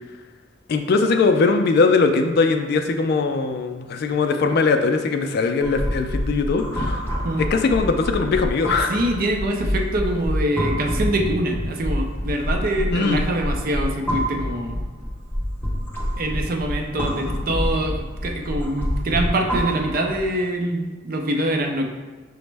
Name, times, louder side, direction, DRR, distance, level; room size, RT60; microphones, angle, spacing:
voice 1, 0.7-7.0 7.4-9.0 12.9-13.2, left 4 dB, 55° left, 7 dB, 0.3 m, -20 dB
sound 1, 5.6-20.3, equal, 10° left, 0.6 m, -27 dB
voice 2, 8.9-14.8 16.2-17.9 18.2-21.8, right 1 dB, 45° right, 3 dB, 0.5 m, -24 dB
6.0 x 2.1 x 3.3 m, 1.3 s
head